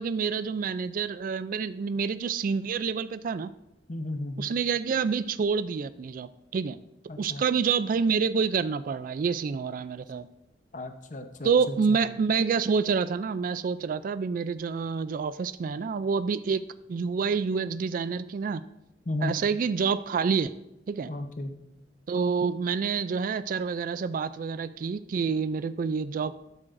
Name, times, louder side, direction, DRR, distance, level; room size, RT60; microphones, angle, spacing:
voice 1, 0.0-3.5 4.4-6.8 7.2-10.3 11.4-16.6 16.9-18.6 19.2-20.5 20.9-21.1 22.1-26.4, right 5 dB, 50° right, 14 dB, 0.3 m, -27 dB
voice 2, 3.9-4.5 7.1-7.4 10.7-12.0 19.1-19.3 21.1-21.5, left 2 dB, 45° left, 7 dB, 0.8 m, -34 dB
12.5 x 9.7 x 2.6 m, 0.87 s
head